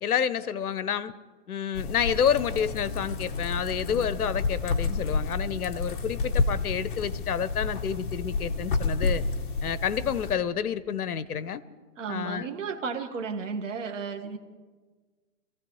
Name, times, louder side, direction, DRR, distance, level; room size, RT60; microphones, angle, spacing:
voice 1, 0.0-1.1 1.5-9.2 9.6-11.6 12.1-12.5, left 8 dB, 65° left, 15 dB, 0.9 m, -29 dB
sound 1, 1.7-10.3, left 4 dB, 30° left, 1.1 m, -30 dB
voice 2, 12.0-14.4, right 5 dB, 50° right, 6 dB, 1.7 m, -33 dB
26.5 x 15.0 x 3.1 m, 1.4 s
hypercardioid pair, 155°, 47 cm